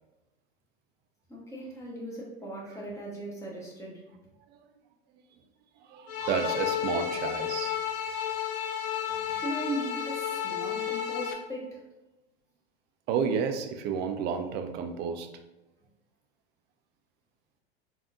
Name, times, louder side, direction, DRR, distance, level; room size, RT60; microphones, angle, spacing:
voice 1, 1.3-4.0 9.2-11.8, right 1 dB, 10° left, -4 dB, 1.1 m, -38 dB
voice 2, 5.8-7.8 13.1-15.3, right 6 dB, 35° right, 6 dB, 0.4 m, -31 dB
sound 1, 6.1-11.3, left 9 dB, 50° left, 0.5 m, -32 dB
3.5 x 2.7 x 2.3 m, 1.0 s
hypercardioid pair, 90°, 30 cm